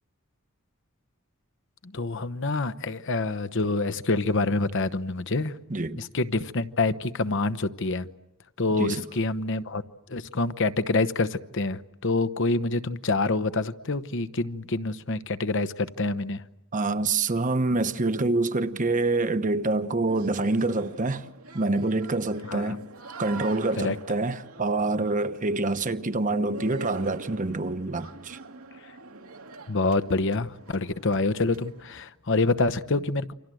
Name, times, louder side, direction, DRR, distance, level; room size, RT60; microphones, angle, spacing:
voice 1, 1.8-5.5 6.0-8.1 8.6-9.8 10.1-16.4 22.5-22.7 23.8-24.0 29.7-33.3, left 3 dB, 60° left, 1.0 m, -26 dB
voice 2, 5.7-6.0 8.8-9.0 16.7-21.3 21.5-22.8 23.2-28.4, right 2 dB, 35° right, 1.1 m, -26 dB
sound 1, 20.1-32.0, right 3 dB, 85° right, 2.4 m, -44 dB
28.5 x 25.5 x 7.8 m
head